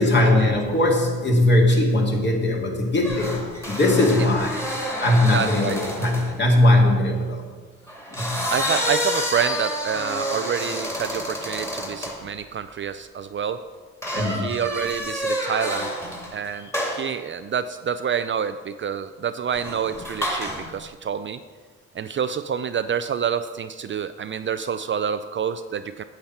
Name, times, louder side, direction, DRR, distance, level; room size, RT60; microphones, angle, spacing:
voice 1, 0.0-3.4 3.7-4.6 5.0-7.4 8.1-8.4 14.1-14.5, left 1 dB, 35° left, 0 dB, 2.4 m, -20 dB
sound 1, 3.0-6.3 7.9-12.2 14.0-16.4 16.7-17.1 19.5-20.7, equal, 10° left, 2.2 m, -29 dB
voice 2, 5.3-6.1 8.5-13.7 14.1-15.9 16.3-21.4 21.9-26.0, right 7 dB, 40° right, 11 dB, 0.5 m, -28 dB
8.8 x 8.0 x 5.8 m, 1.5 s
cardioid pair, 90°, 30 cm